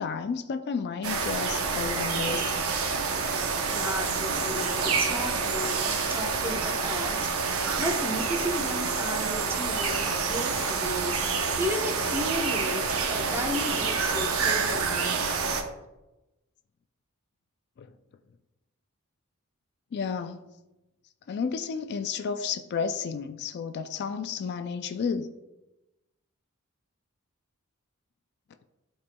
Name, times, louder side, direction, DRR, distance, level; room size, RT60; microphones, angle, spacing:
voice 1, 0.0-2.6 17.8-17.9 19.9-20.5 21.3-25.3, left 6 dB, 50° left, 0.3 m, -32 dB
sound 1, 1.0-15.6, right 5 dB, 70° right, 0.8 m, -28 dB
voice 2, 3.7-15.2, equal, 10° right, 0.8 m, -34 dB
11.5 x 4.2 x 2.2 m
head